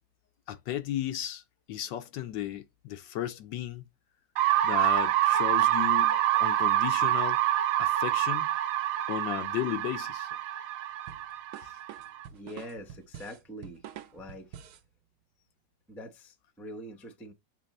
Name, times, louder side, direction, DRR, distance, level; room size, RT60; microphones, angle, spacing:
voice 1, 0.5-1.4 1.7-3.8 4.6-7.4 7.8-8.5 9.1-10.3, left 12 dB, 75° left, 1.2 m, -34 dB
sound 1, 4.4-12.2, right 13 dB, 85° right, 1.4 m, -26 dB
sound 2, 11.1-14.9, right 9 dB, 70° right, 1.1 m, -46 dB
voice 2, 12.3-13.8 14.1-14.5 15.9-17.3, equal, ahead, 0.4 m, -44 dB
6.9 x 3.0 x 5.3 m
omnidirectional pair, 2.1 m